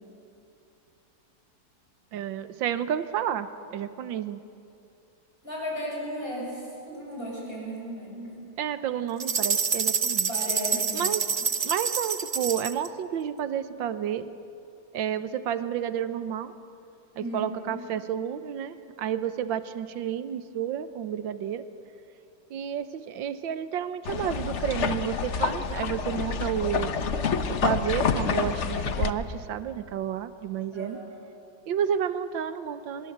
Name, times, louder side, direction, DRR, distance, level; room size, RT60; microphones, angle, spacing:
voice 1, 2.1-4.4 8.6-10.3 10.9-11.3 11.6-14.4 14.9-16.5 17.2-21.6 22.5-26.9 27.2-31.0 31.7-33.1, right 9 dB, 85° right, 12 dB, 1.7 m, -31 dB
voice 2, 5.4-8.4 10.3-11.0 17.2-17.8 30.7-31.1, equal, 30° left, -3 dB, 7.2 m, -35 dB
sound 1, 9.2-12.9, right 5 dB, 45° right, 0.6 m, -27 dB
sound 2, 24.1-29.1, left 6 dB, 45° left, 1.0 m, -28 dB
24.5 x 21.5 x 8.1 m, 2.6 s
omnidirectional pair, 2.0 m